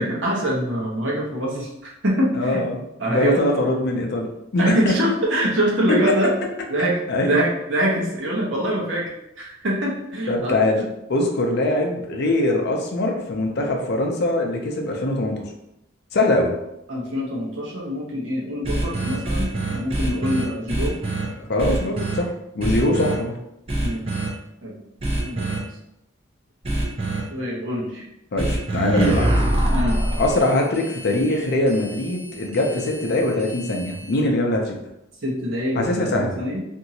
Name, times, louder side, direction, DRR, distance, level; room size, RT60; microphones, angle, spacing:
voice 1, 0.0-2.6 3.0-3.5 4.6-6.3 6.7-9.1 9.4-10.8 16.9-21.0 23.8-24.1 24.6-24.8 25.2-25.7 27.3-28.0 29.7-30.0 35.2-36.6, equal, 60° right, -3 dB, 0.8 m, -24 dB
voice 2, 2.4-2.8 3.1-4.9 5.9-6.0 7.1-7.4 10.3-10.8 11.1-15.3 16.1-16.5 21.5-23.4 28.3-29.4 30.2-34.8 35.8-36.4, left 1 dB, 55° left, 2 dB, 0.5 m, -22 dB
sound 1, 18.6-21.2 21.6-22.2 22.6-23.1 23.7-24.3 25.0-25.6 26.6-27.2 28.4-34.2, right 1 dB, 25° right, 0.5 m, -25 dB
2.8 x 2.6 x 2.7 m, 0.84 s
head